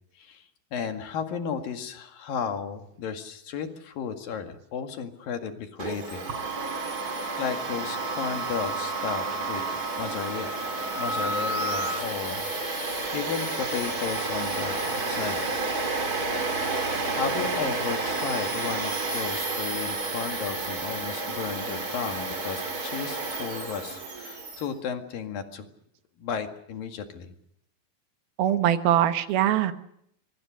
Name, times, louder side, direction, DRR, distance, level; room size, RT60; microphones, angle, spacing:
voice 1, 0.7-6.2 6.8-6.9 7.4-10.5 11.0-15.4 17.1-25.7 26.2-27.3, left 7 dB, 70° left, 6 dB, 3.7 m, -34 dB
Domestic sounds home sounds, 5.8-24.7, right 3 dB, 25° right, 2.8 m, -31 dB
sound 1, 6.3-12.0, right 2 dB, 65° right, 1.3 m, -33 dB
voice 2, 28.4-29.7, right 11 dB, 80° right, 9 dB, 3.2 m, -22 dB
24.5 x 24.0 x 6.4 m, 0.72 s
omnidirectional pair, 4.3 m